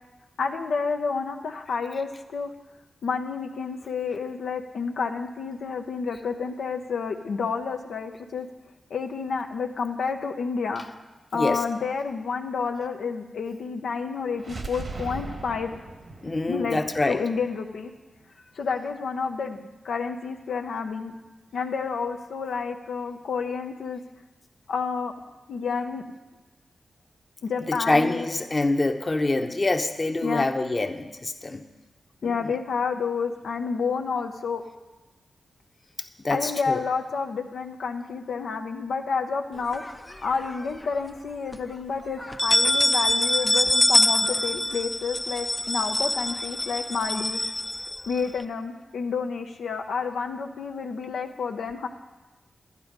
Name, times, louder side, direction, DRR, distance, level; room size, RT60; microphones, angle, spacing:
voice 1, 0.4-2.5 3.0-8.5 8.9-10.8 11.3-15.8 16.5-16.8 17.1-17.9 18.5-19.6 19.8-21.1 21.5-24.0 24.7-25.1 25.5-26.0 27.4-28.3 30.2-30.5 32.2-34.6 36.3-39.8 40.2-47.4 48.1-51.9, left 5 dB, 85° left, 3 dB, 0.7 m, -29 dB
Slow Motion Gun Shot, 14.4-18.2, right 3 dB, 60° right, 1.2 m, -39 dB
voice 2, 16.2-17.2 27.7-31.6 32.2-32.5 36.2-36.8, left 2 dB, 35° left, 6 dB, 0.9 m, -25 dB
sound 1, 39.7-40.6 41.1-41.2 41.5-41.6 42.2-48.4, left 1 dB, 20° left, 0.5 m, -24 dB
11.5 x 9.7 x 5.2 m, 1.1 s
cardioid pair, 55°, 0 cm